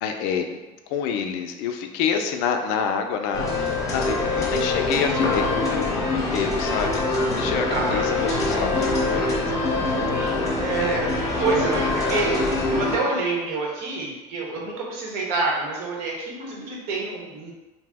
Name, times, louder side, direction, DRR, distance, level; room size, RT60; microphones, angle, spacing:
voice 1, 0.0-0.6 0.9-7.0 7.4-9.8 10.8-11.0 11.7-11.9, left 7 dB, 70° left, 6 dB, 0.4 m, -28 dB
sound 1, 3.3-13.0, left 2 dB, 20° left, 0.6 m, -24 dB
voice 2, 4.3-4.9 7.7-8.5 10.6-11.1 11.4-12.4 12.7-17.5, right 3 dB, 70° right, -3 dB, 0.9 m, -27 dB
2.8 x 2.0 x 3.4 m, 1.1 s
cardioid pair, 130°, 16 cm